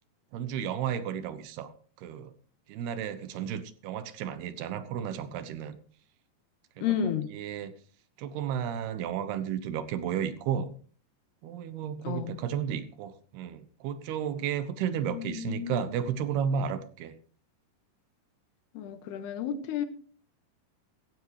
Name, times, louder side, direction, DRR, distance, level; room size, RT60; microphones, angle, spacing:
voice 1, 0.3-1.7 2.0-2.3 2.7-5.8 6.8-6.9 7.3-7.7 8.2-10.7 11.4-17.2, right 8 dB, 80° right, 12 dB, 3.0 m, -33 dB
voice 2, 6.8-7.3 12.0-12.4 15.1-15.8 18.7-19.9, left 9 dB, 85° left, 10 dB, 3.3 m, -32 dB
16.0 x 15.0 x 3.1 m, 0.42 s
omnidirectional pair, 4.6 m